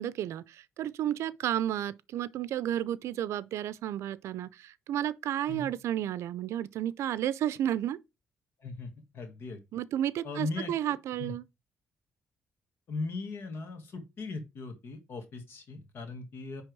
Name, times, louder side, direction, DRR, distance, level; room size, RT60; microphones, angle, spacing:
voice 1, 0.0-8.0 9.7-11.4, right 11 dB, 80° right, 0.5 m, -32 dB
voice 2, 8.6-9.6 10.2-11.3 12.9-16.6, left 3 dB, 55° left, 1.5 m, -39 dB
9.9 x 3.4 x 4.6 m
cardioid pair, 140°, 5 cm